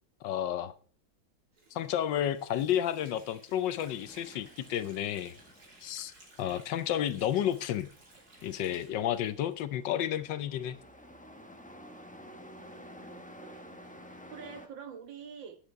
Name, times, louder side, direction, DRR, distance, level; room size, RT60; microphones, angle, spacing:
voice 1, 0.2-0.7 1.7-5.3 5.8-6.1 6.4-7.9 8.4-10.8, left 11 dB, 70° left, 1.3 m, -31 dB
Water / Sink (filling or washing), 1.5-10.1, right 2 dB, 50° right, 3.5 m, -58 dB
Truck, 3.7-14.7, equal, 5° left, 0.7 m, -52 dB
voice 2, 12.2-15.6, right 6 dB, 70° right, 2.0 m, -48 dB
10.5 x 9.8 x 4.6 m
omnidirectional pair, 2.1 m